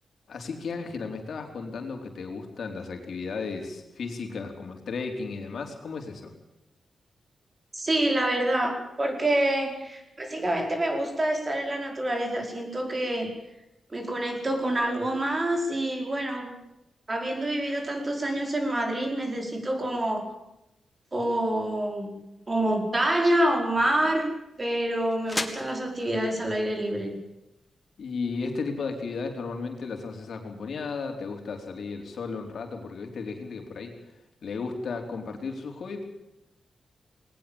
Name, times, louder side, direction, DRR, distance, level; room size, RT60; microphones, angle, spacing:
voice 1, 0.3-6.3 28.0-33.9 34.4-36.1, left 4 dB, 65° left, 4 dB, 4.4 m, -34 dB
voice 2, 7.7-13.3 13.9-16.6 17.1-20.3 21.1-22.2 22.5-24.3 24.6-27.2, right 1 dB, 25° right, 3 dB, 5.0 m, -27 dB
sound 1, 22.6-28.5, left 1 dB, 10° left, 2.2 m, -41 dB
21.0 x 19.5 x 7.2 m, 0.89 s
wide cardioid pair, 150°, 0 cm